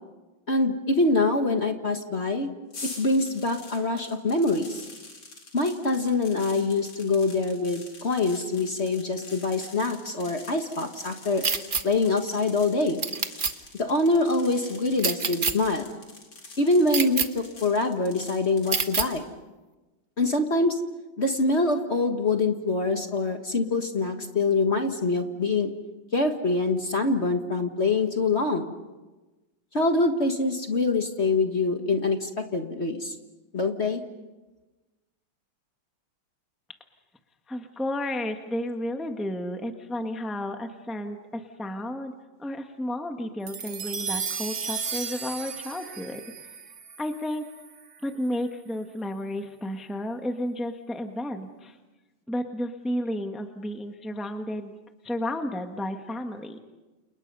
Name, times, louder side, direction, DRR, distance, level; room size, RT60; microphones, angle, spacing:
voice 1, 0.5-2.5 2.8-4.8 5.5-11.4 11.8-13.0 13.8-15.9 16.6-19.3 20.2-20.8 21.2-25.7 26.1-28.7 29.7-33.1 33.5-34.0, left 3 dB, 35° left, 5 dB, 1.6 m, -25 dB
sound 1, 2.7-19.2, left 3 dB, 70° left, 5.1 m, -46 dB
sound 2, 11.4-11.8 13.0-13.5 15.0-15.5 16.9-17.3 18.7-19.1, right 5 dB, 30° right, 1.0 m, -25 dB
voice 2, 37.5-42.1 42.4-46.3 47.0-47.5 48.0-51.8 52.3-54.7 55.0-56.6, left 1 dB, ahead, 5 dB, 1.2 m, -32 dB
sound 3, 43.5-48.0, right 6 dB, 50° right, 1.8 m, -35 dB
29.5 x 29.0 x 5.5 m, 1.2 s
omnidirectional pair, 2.3 m